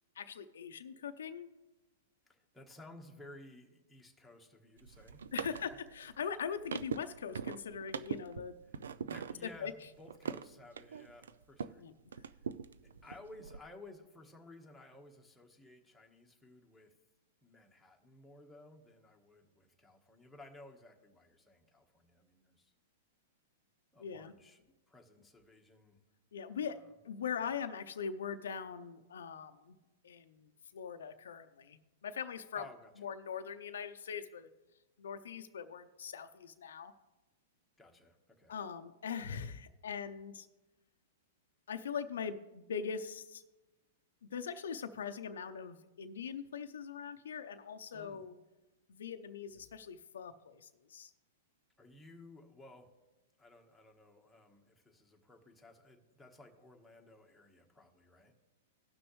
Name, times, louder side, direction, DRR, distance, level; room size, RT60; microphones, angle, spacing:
voice 1, 0.2-1.5 5.3-8.6 9.4-9.7 11.8-11.9 24.0-24.3 26.3-26.8 27.0-29.8 30.0-32.7 33.0-34.5 35.0-36.9 38.5-40.5 41.7-43.4 44.2-48.4 48.9-51.1, left 7 dB, 85° left, 9 dB, 0.6 m, -41 dB
voice 2, 2.3-5.2 5.6-5.8 8.7-11.8 12.2-12.5 13.0-16.9 17.4-22.7 23.9-24.6 24.9-26.0 26.5-26.9 32.5-33.1 37.8-38.5 47.9-48.3 51.8-52.9 53.4-58.3, left 2 dB, 5° left, 0 dB, 1.3 m, -56 dB
sound 1, 4.8-11.8 12.1-13.6, right 7 dB, 90° right, 0.4 m, -43 dB
18.0 x 6.2 x 3.2 m, 1.1 s
hypercardioid pair, 140°, 0 cm